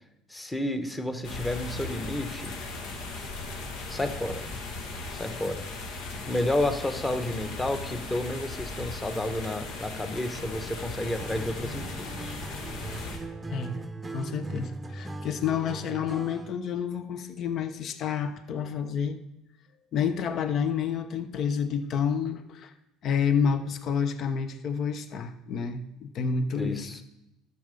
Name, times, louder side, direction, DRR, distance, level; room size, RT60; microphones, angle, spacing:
voice 1, 0.3-2.5 3.9-4.4 5.1-5.6 6.3-12.4 26.5-27.0, left 1 dB, 10° left, 8 dB, 1.1 m, -31 dB
sound 1, 1.2-13.2, left 3 dB, 75° left, 2.1 m, -37 dB
Acoustic guitar, 11.2-16.6, right 2 dB, 15° right, 0.7 m, -39 dB
voice 2, 13.5-13.8 14.1-19.2 19.9-22.7 23.0-27.0, left 7 dB, 50° left, 10 dB, 0.9 m, -29 dB
12.0 x 6.9 x 5.3 m, 0.89 s
supercardioid pair, 110°, 0 cm